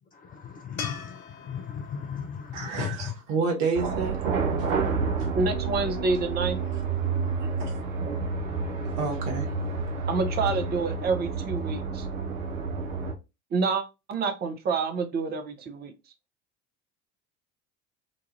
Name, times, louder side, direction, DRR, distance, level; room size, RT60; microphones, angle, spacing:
voice 1, 0.1-3.1, left 8 dB, 20° left, 0.4 m, -36 dB
sound 1, 0.8-4.0 7.3-7.4, left 6 dB, 80° left, 0.6 m, -42 dB
voice 2, 2.5-4.1 7.6-7.7 8.8-9.5, right 4 dB, 55° right, 1.1 m, -29 dB
sound 2, 3.7-13.1, right 4 dB, 70° right, 0.7 m, -29 dB
voice 3, 5.3-6.6 10.1-12.1 13.5-15.9, right 4 dB, 25° right, 0.6 m, -28 dB
3.1 x 2.3 x 2.5 m
figure-of-eight pair, 65°, 41 cm